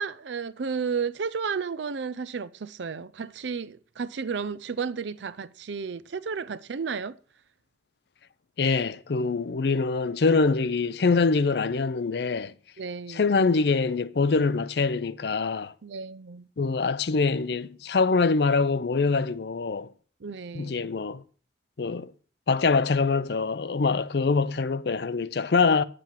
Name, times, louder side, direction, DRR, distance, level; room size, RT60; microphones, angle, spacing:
voice 1, 0.0-7.2 12.8-13.3 15.8-16.5 20.2-20.8, right 5 dB, 75° right, 0.5 m, -32 dB
voice 2, 8.6-12.5 13.1-15.7 16.6-19.9 20.5-21.2 21.8-22.1 22.5-25.8, left 4 dB, 60° left, 0.5 m, -24 dB
9.0 x 7.6 x 5.7 m
head